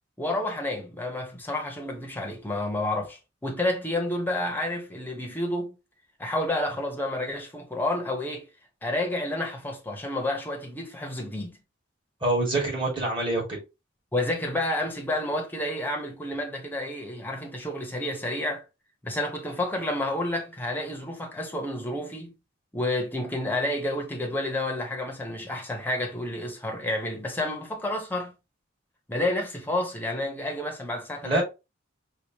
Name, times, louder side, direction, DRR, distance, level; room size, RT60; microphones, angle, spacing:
voice 1, 0.2-5.8 6.2-8.5 8.8-11.6 14.1-18.6 19.0-22.3 22.7-28.3 29.1-31.4, left 1 dB, 10° left, 0.9 m, -30 dB
voice 2, 12.2-13.6 31.2-31.4, right 2 dB, 25° right, 1.9 m, -25 dB
4.8 x 2.4 x 2.8 m
head